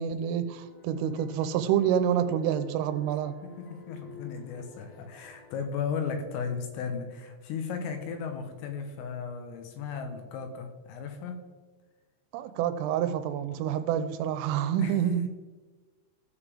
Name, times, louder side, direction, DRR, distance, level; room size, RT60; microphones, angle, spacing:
voice 1, 0.0-3.4 12.3-15.3, right 9 dB, 85° right, 11 dB, 3.2 m, -27 dB
sound 1, 0.5-5.6, left 4 dB, 70° left, 3.5 m, -50 dB
voice 2, 3.4-11.4 14.8-15.0, left 6 dB, 90° left, 6 dB, 3.8 m, -35 dB
15.5 x 7.0 x 3.6 m, 1.3 s
omnidirectional pair, 5.7 m